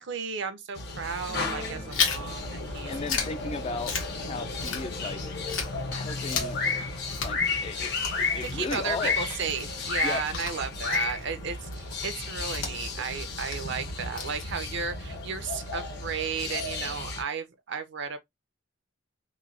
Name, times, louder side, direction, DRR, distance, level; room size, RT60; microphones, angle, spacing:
voice 1, 0.0-2.9 8.4-18.2, right 6 dB, 60° right, 0.6 m, -34 dB
sound 1, 0.8-17.2, left 3 dB, 60° left, 0.8 m, -33 dB
sound 2, 1.3-2.8, right 2 dB, 80° right, 1.1 m, -44 dB
Chewing mastication, 1.9-5.2 5.5-14.9, left 5 dB, 80° left, 1.0 m, -35 dB
voice 2, 2.9-3.9 4.2-5.2 5.9-6.6 7.2-7.9 8.2-9.2 10.0-10.2, left 4 dB, 30° left, 0.3 m, -35 dB
3.0 x 2.2 x 2.5 m
head